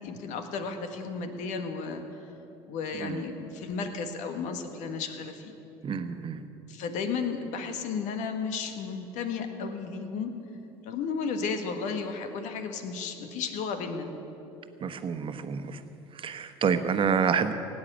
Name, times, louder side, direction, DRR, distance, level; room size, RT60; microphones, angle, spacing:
voice 1, 0.0-2.2 2.6-5.5 6.7-10.3 10.8-14.1, left 5 dB, 65° left, 7 dB, 1.6 m, -33 dB
voice 2, 5.8-6.4 14.8-15.8 16.2-17.5, right 6 dB, 40° right, 8 dB, 1.3 m, -28 dB
17.0 x 8.7 x 8.9 m, 2.9 s
hypercardioid pair, 80°, 14 cm